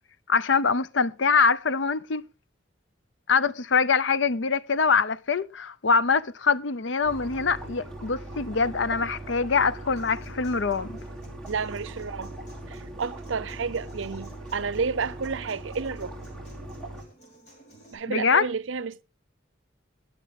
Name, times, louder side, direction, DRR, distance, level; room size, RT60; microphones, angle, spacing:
voice 1, 0.3-2.2 3.3-11.0 18.1-18.5, left 5 dB, 70° left, 0.6 m, -24 dB
sound 1, 7.0-17.0, right 1 dB, 5° left, 3.1 m, -40 dB
Human voice / Acoustic guitar, 10.0-17.9, right 2 dB, 40° left, 4.8 m, -54 dB
voice 2, 11.5-12.4 12.7-16.1 17.9-19.0, right 5 dB, 80° right, 0.6 m, -31 dB
21.0 x 7.4 x 3.7 m
head